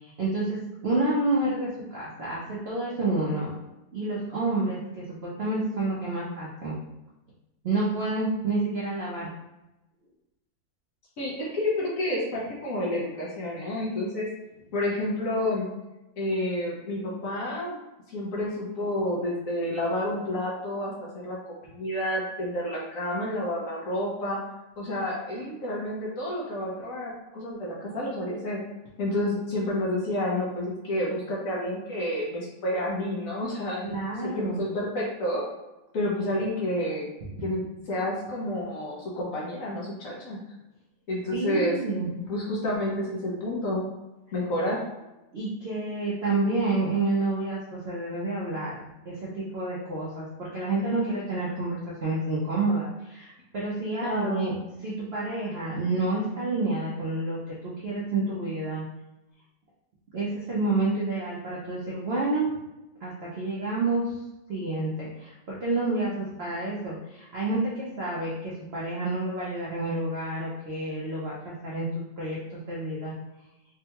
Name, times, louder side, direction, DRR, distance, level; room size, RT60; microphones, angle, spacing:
voice 1, 0.0-3.5 3.9-6.8 7.6-9.3 33.8-34.6 41.3-42.1 45.3-54.6 54.8-58.8 60.1-62.5 63.0-64.1 64.5-71.9 72.2-73.1, right 2 dB, 65° right, -7 dB, 0.6 m, -29 dB
voice 2, 11.2-14.3 14.7-15.7 16.2-17.8 18.1-24.4 24.8-28.6 29.0-33.9 34.4-35.4 35.9-37.1 37.4-40.4 41.1-41.7 42.3-43.8 44.3-44.8 54.0-54.4, left 1 dB, 60° left, -4 dB, 1.0 m, -29 dB
3.6 x 2.2 x 2.9 m, 0.97 s
omnidirectional pair, 1.8 m